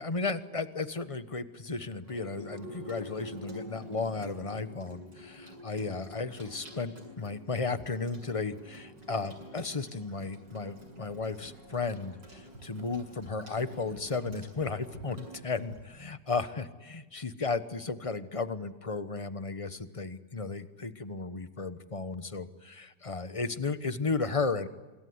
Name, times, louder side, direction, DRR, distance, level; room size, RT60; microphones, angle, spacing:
voice 1, 0.0-24.7, left 4 dB, 25° left, 12 dB, 0.8 m, -34 dB
Water tap faucet / Sink (filling or washing), 2.0-15.8, equal, 85° right, 8.1 m, -47 dB
27.0 x 23.0 x 9.5 m, 1.2 s
omnidirectional pair, 1.9 m